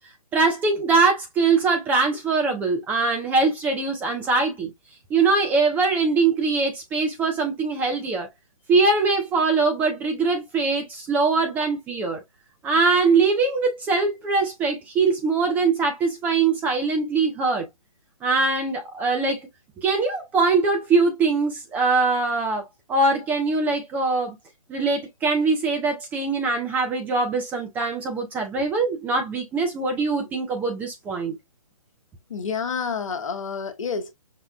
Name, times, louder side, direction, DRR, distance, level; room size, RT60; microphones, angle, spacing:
voice 1, 0.3-4.7 5.1-8.3 8.7-12.2 12.6-17.7 18.2-19.5 19.8-24.3 24.7-31.4, right 4 dB, 10° right, 0.4 m, -22 dB
voice 2, 32.3-34.1, left 5 dB, 60° left, 0.9 m, -29 dB
5.7 x 2.3 x 2.3 m
figure-of-eight pair, 135°, 19 cm